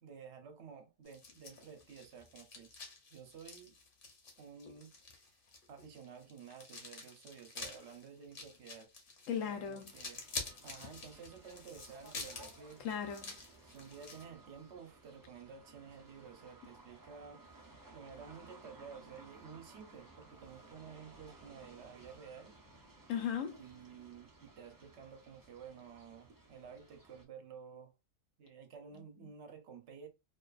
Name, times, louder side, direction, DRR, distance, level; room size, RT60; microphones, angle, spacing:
voice 1, 0.0-2.8 3.1-3.8 4.4-5.3 5.7-8.9 9.4-10.2 10.6-12.8 13.6-17.4 17.9-22.6 23.6-27.9 28.4-30.1, right 6 dB, 65° right, 0.9 m, -52 dB
sound 1, 1.1-14.2, left 4 dB, 50° left, 0.9 m, -48 dB
voice 2, 9.3-9.9 12.8-13.3 23.1-23.6 28.9-29.3, left 8 dB, 85° left, 1.0 m, -37 dB
sound 2, 9.9-27.2, right 2 dB, 30° right, 0.3 m, -59 dB
2.7 x 2.3 x 2.3 m
omnidirectional pair, 1.3 m